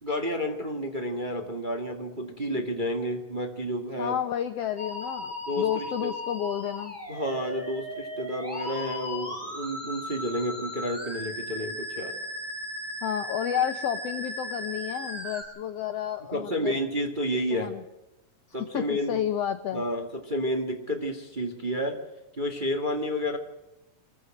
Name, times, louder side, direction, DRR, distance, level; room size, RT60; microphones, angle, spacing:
voice 1, 0.0-4.1 5.5-6.1 7.1-12.2 16.3-17.8 18.5-19.2 19.7-22.0 22.4-23.4, equal, 20° right, 3 dB, 1.5 m, -30 dB
voice 2, 4.0-7.0 13.0-16.8 17.5-17.8 18.6-19.8, left 9 dB, 70° left, 9 dB, 1.5 m, -31 dB
Musical instrument, 4.8-15.4, left 1 dB, 5° right, 5.0 m, -36 dB
25.5 x 15.0 x 7.7 m, 0.99 s
omnidirectional pair, 3.9 m